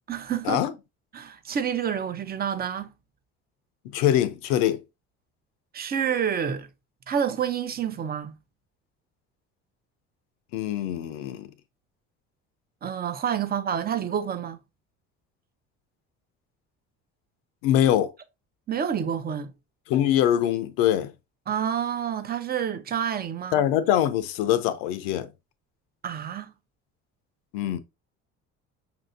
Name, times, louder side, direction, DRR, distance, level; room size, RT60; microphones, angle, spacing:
voice 1, 0.1-0.6 1.1-2.9 5.7-6.7 7.1-8.4 12.8-14.6 18.7-19.5 21.5-23.6 26.0-26.5, right 8 dB, 30° right, 0.6 m, -28 dB
voice 2, 3.8-4.8 10.5-11.5 17.6-18.1 19.9-21.1 23.5-25.3 27.5-27.8, left 11 dB, 90° left, 0.6 m, -23 dB
5.6 x 2.7 x 2.6 m
supercardioid pair, 90°, 31 cm